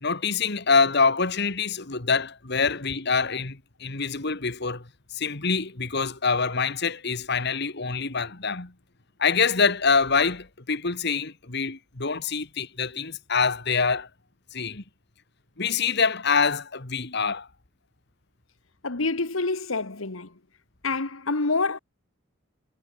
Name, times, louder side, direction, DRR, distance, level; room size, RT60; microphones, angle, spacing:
voice 1, 0.0-4.8 5.1-8.7 9.2-14.1 14.5-14.8 15.6-17.5, left 5 dB, 55° left, 2.0 m, -25 dB
voice 2, 18.8-20.3 20.8-21.8, left 3 dB, 85° left, 1.7 m, -27 dB
head